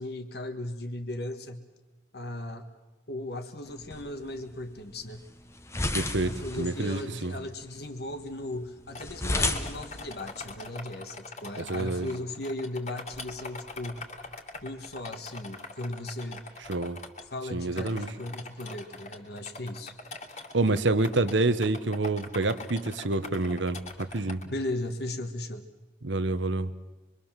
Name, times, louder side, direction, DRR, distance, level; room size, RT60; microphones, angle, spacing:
voice 1, 0.0-1.7 2.1-2.7 3.1-5.2 6.2-14.0 14.6-16.4 17.3-20.0 24.4-25.7, left 1 dB, 55° left, 7 dB, 1.6 m, -37 dB
sound 1, 3.7-10.7, left 2 dB, 15° left, 1.1 m, -35 dB
voice 2, 5.9-7.3 11.6-12.1 16.7-17.0 17.5-18.1 20.5-24.4 26.0-26.7, right 2 dB, 80° right, 13 dB, 1.1 m, -27 dB
sound 2, 8.9-17.2 17.8-24.4, left 3 dB, 40° left, 2.5 m, -43 dB
25.0 x 23.5 x 7.4 m, 1.1 s
head